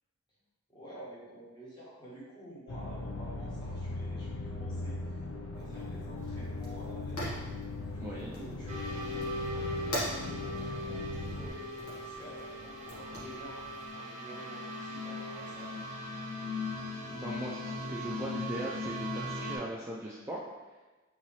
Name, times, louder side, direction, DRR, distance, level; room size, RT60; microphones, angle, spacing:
voice 1, 0.7-5.2 5.5-7.4 7.9-15.7, right 1 dB, 20° left, -7 dB, 1.2 m, -50 dB
sound 1, 2.7-11.5, left 2 dB, 65° left, 0.4 m, -39 dB
Fire, 5.5-13.9, equal, 90° left, 1.4 m, -44 dB
voice 2, 8.0-8.3 17.1-20.4, right 1 dB, 10° right, -5 dB, 0.3 m, -39 dB
sound 2, 8.7-19.6, left 1 dB, 35° right, 0.9 m, -39 dB
4.2 x 3.8 x 3.1 m, 1.2 s
head